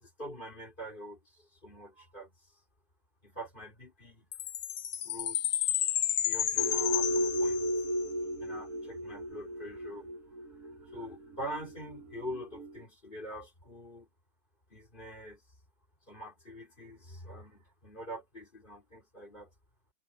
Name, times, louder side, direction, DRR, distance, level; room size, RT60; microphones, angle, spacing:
voice 1, 0.0-2.3 3.2-4.3 5.0-5.7 6.2-7.7 8.4-10.1 10.8-14.1 14.7-15.4 16.1-19.5, equal, 25° left, 4.4 m, -45 dB
Chime, 4.3-8.0, left 11 dB, 60° left, 1.0 m, -31 dB
sound 1, 6.6-12.7, equal, 50° right, 1.5 m, -34 dB
omnidirectional pair, 2.1 m